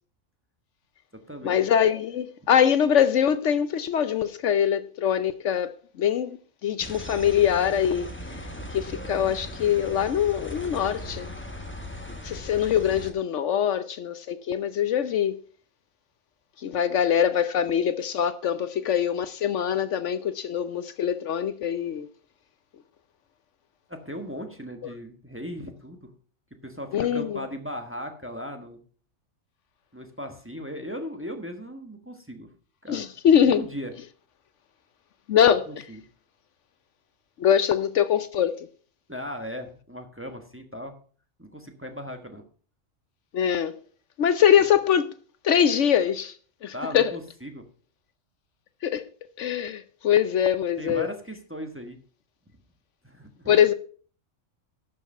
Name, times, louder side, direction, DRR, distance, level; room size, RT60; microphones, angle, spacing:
voice 1, 1.4-5.7 6.0-6.4 6.6-8.1 8.7-11.3 12.2-15.3 16.6-22.1 26.9-27.4 32.9-33.6 35.3-35.8 37.4-38.6 43.3-43.7 44.2-45.1 45.4-46.3 46.6-47.1 48.8-49.0 49.4-51.1 53.5-53.7, left 9 dB, 70° left, 1.0 m, -23 dB
sound 1, 6.8-13.1, left 1 dB, 10° left, 1.2 m, -38 dB
voice 2, 23.9-26.0 26.6-28.8 29.9-32.5 32.8-33.0 33.4-33.9 35.7-36.0 39.1-40.9 41.4-42.4 46.7-47.6 50.8-52.0 53.0-53.6, equal, 10° right, 1.3 m, -37 dB
12.0 x 6.6 x 5.5 m
omnidirectional pair, 1.3 m